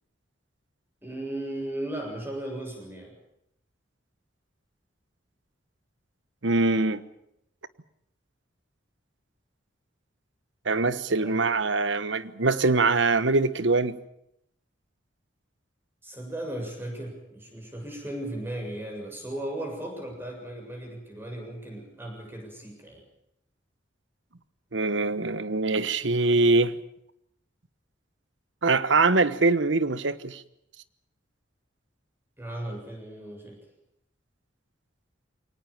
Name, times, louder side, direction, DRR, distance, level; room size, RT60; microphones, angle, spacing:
voice 1, 1.0-3.1 11.2-11.4 16.0-23.0 32.4-33.6, right 1 dB, 10° right, 7.2 m, -36 dB
voice 2, 6.4-7.0 10.6-14.0 24.7-26.7 28.6-30.4, right 3 dB, 75° right, 1.2 m, -23 dB
23.5 x 19.0 x 8.8 m
head